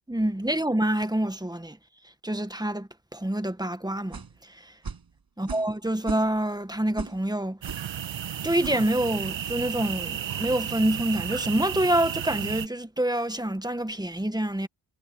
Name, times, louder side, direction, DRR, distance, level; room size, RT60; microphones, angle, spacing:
voice 1, 0.1-1.8 2.2-4.7 5.4-7.6 8.4-14.7, right 1 dB, 10° right, 1.7 m, -27 dB
sound 1, 4.1-4.4 4.8-5.1 5.5-5.8 6.0-6.5 7.0-7.2 7.7-7.9 8.6-8.8, right 5 dB, 55° right, 7.1 m, -37 dB
sound 2, 7.6-12.7, right 9 dB, 80° right, 1.8 m, -33 dB
cardioid pair, 60°, 44 cm